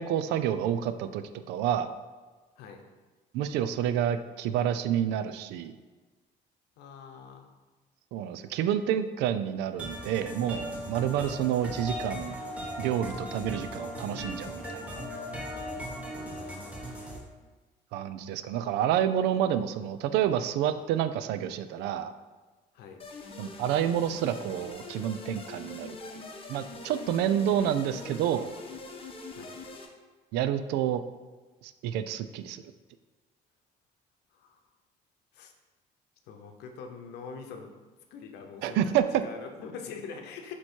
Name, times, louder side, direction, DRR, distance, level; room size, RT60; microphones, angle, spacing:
voice 1, 0.0-1.9 3.3-5.8 8.1-12.4 12.8-15.0 17.9-22.1 23.4-26.0 26.5-28.5 30.3-31.0 31.6-32.6 38.6-39.2, right 10 dB, 90° right, 11 dB, 0.4 m, -29 dB
voice 2, 6.8-7.5 16.2-16.9 22.7-23.0 29.3-29.6 34.3-34.6 35.3-35.5 36.3-37.7 38.1-40.5, left 5 dB, 85° left, 4 dB, 0.8 m, -44 dB
sound 1, 9.8-17.2, equal, 10° right, 1.3 m, -38 dB
sound 2, 23.0-29.9, left 3 dB, 35° left, 0.9 m, -43 dB
7.7 x 3.0 x 4.4 m, 1.3 s
cardioid pair, 110°, 17 cm